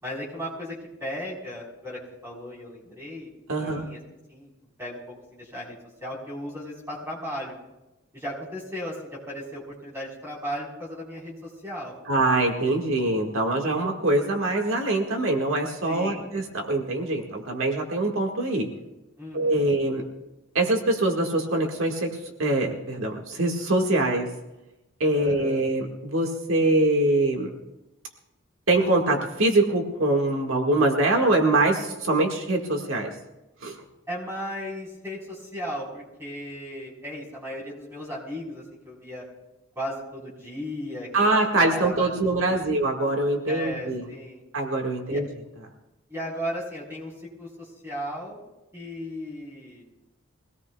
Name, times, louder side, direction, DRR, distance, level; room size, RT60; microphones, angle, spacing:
voice 1, 0.0-3.3 3.6-4.0 4.3-4.5 4.8-5.8 6.0-7.6 8.1-11.9 15.9-16.2 19.2-19.7 25.1-25.6 34.1-39.2 39.7-41.3 41.6-42.5 43.5-44.4 45.1-45.2 46.1-48.4 48.7-49.8, equal, 10° right, -4 dB, 4.1 m, -36 dB
voice 2, 3.5-3.8 12.1-18.7 19.3-20.0 20.6-24.3 25.0-27.5 28.7-33.1 33.6-33.8 41.1-44.0 44.5-45.3, right 2 dB, 85° right, 2 dB, 1.8 m, -23 dB
24.0 x 17.5 x 2.3 m, 0.98 s
head